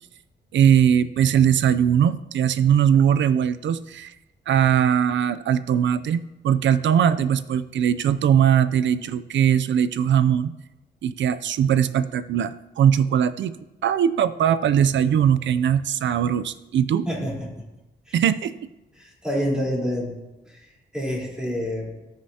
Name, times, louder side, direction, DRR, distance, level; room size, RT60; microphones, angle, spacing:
voice 1, 0.5-4.1 4.5-10.5 11.0-13.6 13.8-17.1 18.1-18.5, right 9 dB, 75° right, 14 dB, 0.5 m, -20 dB
voice 2, 17.1-17.6 18.1-18.2 19.0-20.1 20.4-21.9, equal, 5° right, -4 dB, 3.7 m, -28 dB
18.5 x 6.4 x 2.8 m, 1.0 s
cardioid pair, 105°, 19 cm